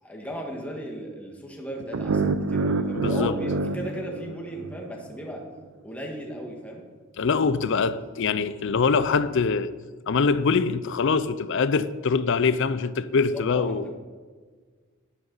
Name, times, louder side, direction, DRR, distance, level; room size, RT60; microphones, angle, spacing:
voice 1, 0.0-5.4 5.8-6.9 13.1-13.9, equal, 5° left, 1.7 m, -36 dB
sound 1, 1.9-5.0, right 3 dB, 70° right, 0.5 m, -27 dB
voice 2, 2.9-3.4 7.2-9.7 10.1-13.9, left 5 dB, 60° left, 0.5 m, -24 dB
11.0 x 11.0 x 4.0 m
head